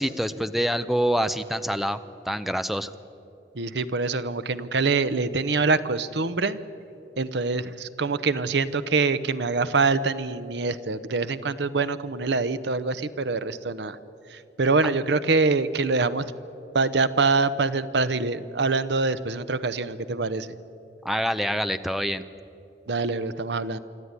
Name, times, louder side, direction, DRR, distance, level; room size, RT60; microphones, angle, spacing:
voice 1, 0.0-2.0 2.3-2.9 21.0-22.2, equal, ahead, 11 dB, 0.6 m, -26 dB
voice 2, 3.5-6.6 7.2-14.0 14.3-16.3 16.7-20.6 22.9-23.8, right 3 dB, 75° right, 13 dB, 0.8 m, -25 dB
26.0 x 13.0 x 9.7 m, 2.9 s
head